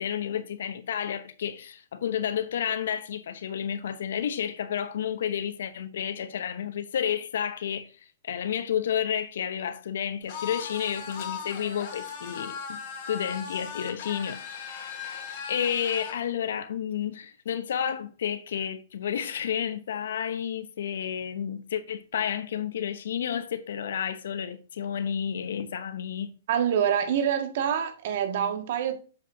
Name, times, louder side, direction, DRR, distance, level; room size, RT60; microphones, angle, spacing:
voice 1, 0.0-7.9 8.2-12.8 13.1-14.7 15.5-26.3, left 8 dB, 75° left, 0.8 m, -31 dB
sound 1, 10.3-16.2, left 6 dB, 45° left, 2.7 m, -38 dB
voice 2, 26.5-28.9, right 8 dB, 55° right, 1.8 m, -26 dB
8.0 x 7.2 x 2.7 m
hypercardioid pair, 135°, 0 cm